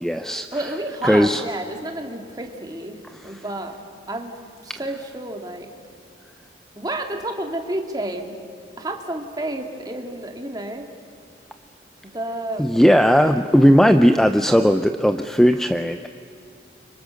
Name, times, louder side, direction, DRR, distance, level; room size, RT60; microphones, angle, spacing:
voice 1, 0.0-0.5 1.0-1.4 12.6-16.1, equal, 5° left, 8 dB, 0.5 m, -16 dB
voice 2, 0.5-3.8 4.1-5.7 6.8-8.4 8.8-10.9 12.0-12.7, right 1 dB, 20° right, 3 dB, 2.2 m, -30 dB
29.5 x 25.5 x 6.5 m, 2.5 s
head